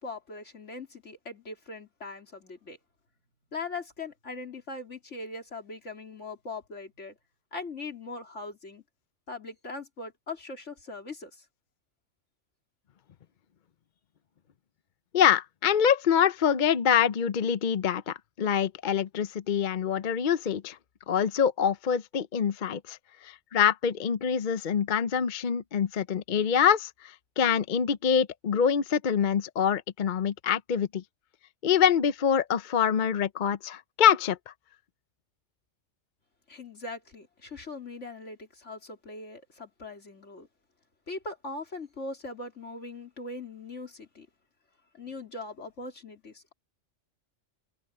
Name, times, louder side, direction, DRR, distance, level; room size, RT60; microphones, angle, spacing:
voice 1, 0.0-2.8 3.5-7.2 7.5-8.8 9.3-11.5 36.5-40.5 41.1-44.3 44.9-46.5, left 3 dB, 75° left, 3.7 m, -40 dB
voice 2, 15.1-20.8 21.1-23.0 23.2-31.0 31.6-34.5, left 8 dB, 50° left, 0.7 m, -25 dB
omnidirectional pair, 1.2 m